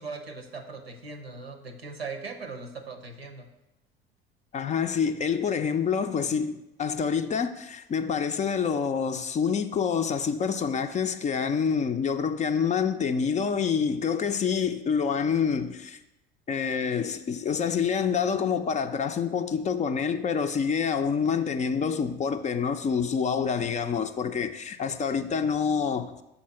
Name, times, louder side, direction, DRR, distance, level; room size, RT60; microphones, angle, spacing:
voice 1, 0.0-3.5, right 4 dB, 90° right, 0.8 m, -39 dB
voice 2, 4.5-16.0 16.5-26.1, left 6 dB, 25° left, 0.4 m, -27 dB
6.7 x 4.2 x 5.7 m
figure-of-eight pair, 65°, 30 cm